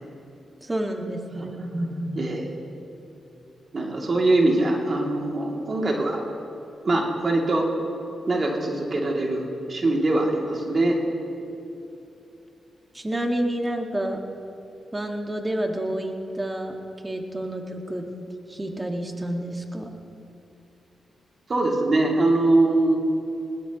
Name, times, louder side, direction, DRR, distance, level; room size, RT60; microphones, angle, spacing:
voice 1, 0.6-1.5 12.9-14.2 14.9-16.7 17.0-18.1 18.5-19.9, right 1 dB, 20° right, 2 dB, 1.9 m, -29 dB
voice 2, 1.4-2.5 3.7-6.2 6.8-7.7 8.3-11.0 21.5-23.0, right 2 dB, 50° right, -1 dB, 2.8 m, -23 dB
20.5 x 17.5 x 3.1 m, 2.8 s
cardioid pair, 55°, 0 cm